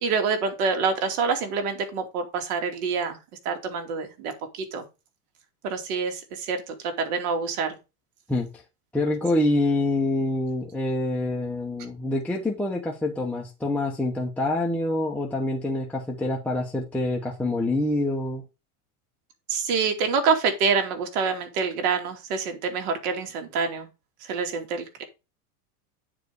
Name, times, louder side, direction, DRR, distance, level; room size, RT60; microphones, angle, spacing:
voice 1, 0.0-3.2 3.4-4.8 5.6-7.8 19.5-23.9 24.3-25.0, right 5 dB, 70° right, 2.7 m, -26 dB
voice 2, 8.3-8.6 8.9-18.4, left 2 dB, 5° left, 1.0 m, -26 dB
9.3 x 4.8 x 4.8 m
supercardioid pair, 135°, 45 cm